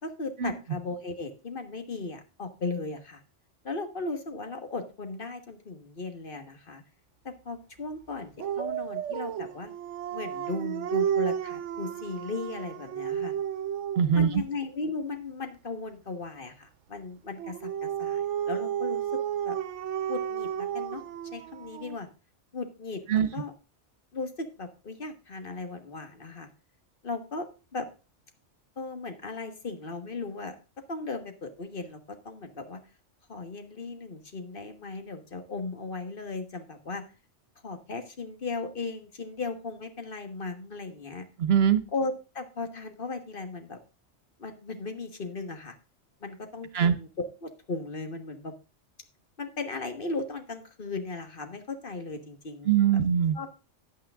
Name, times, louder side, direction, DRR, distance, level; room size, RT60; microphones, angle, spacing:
voice 1, 0.0-3.2 3.6-6.8 7.2-9.7 10.1-13.3 14.1-19.2 19.4-19.6 20.1-21.0 21.3-22.1 22.5-23.5 24.1-26.5 27.0-27.5 27.7-27.9 28.8-30.5 30.9-32.8 33.3-37.0 37.6-41.3 41.9-43.8 44.4-45.7 46.2-48.5 49.4-52.7 53.3-53.5, left 3 dB, 50° left, 7 dB, 1.6 m, -36 dB
Dog, 8.4-14.2 17.4-22.0, right 9 dB, 85° right, 1.0 m, -32 dB
voice 2, 14.0-14.4 23.1-23.3 41.4-41.8 46.7-46.9 52.7-53.4, right 8 dB, 60° right, 13 dB, 1.2 m, -22 dB
10.5 x 8.7 x 3.6 m, 0.32 s
omnidirectional pair, 1.2 m